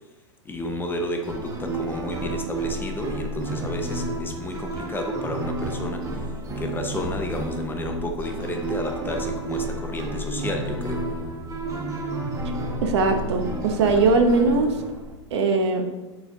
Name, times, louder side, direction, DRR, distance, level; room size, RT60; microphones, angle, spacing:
voice 1, 0.4-6.2 6.6-11.1, left 2 dB, 15° left, 4 dB, 0.7 m, -31 dB
sound 1, 1.2-15.1, right 2 dB, 20° right, 1.0 m, -31 dB
voice 2, 12.8-14.7 15.3-15.8, right 3 dB, 60° right, 5 dB, 0.9 m, -20 dB
7.7 x 4.4 x 3.5 m, 1.1 s
hypercardioid pair, 100°, 16 cm